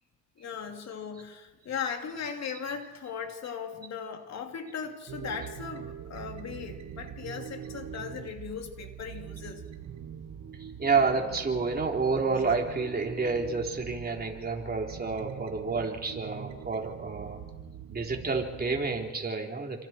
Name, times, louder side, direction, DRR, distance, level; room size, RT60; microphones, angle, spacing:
voice 1, 0.4-9.6, left 6 dB, 60° left, 4 dB, 3.0 m, -38 dB
sound 1, 5.1-19.0, right 8 dB, 65° right, 1.6 m, -43 dB
voice 2, 10.6-17.4 17.9-19.9, right 4 dB, 30° right, 1 dB, 3.9 m, -29 dB
28.5 x 26.0 x 4.5 m, 1.2 s
cardioid pair, 90°, 30 cm